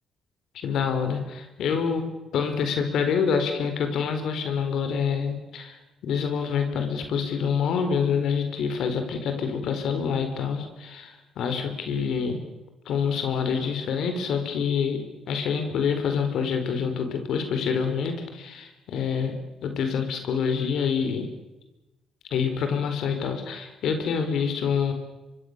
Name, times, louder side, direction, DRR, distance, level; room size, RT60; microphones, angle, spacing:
voice 1, 0.5-12.4 12.8-21.3 22.3-24.9, left 6 dB, 75° left, 6 dB, 4.4 m, -27 dB
24.5 x 24.5 x 6.8 m, 1.0 s
cardioid pair, 90°, 0 cm